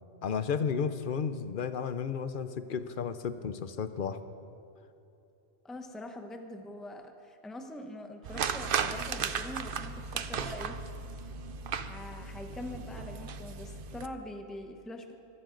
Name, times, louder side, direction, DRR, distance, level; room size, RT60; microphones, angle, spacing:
voice 1, 0.2-4.2, left 6 dB, 55° left, 11 dB, 0.8 m, -33 dB
voice 2, 5.6-10.8 11.8-15.2, left 1 dB, ahead, 4 dB, 0.8 m, -43 dB
sound 1, 8.2-14.1, right 6 dB, 60° right, 0.8 m, -35 dB
22.5 x 12.5 x 3.9 m, 2.9 s
omnidirectional pair, 1.1 m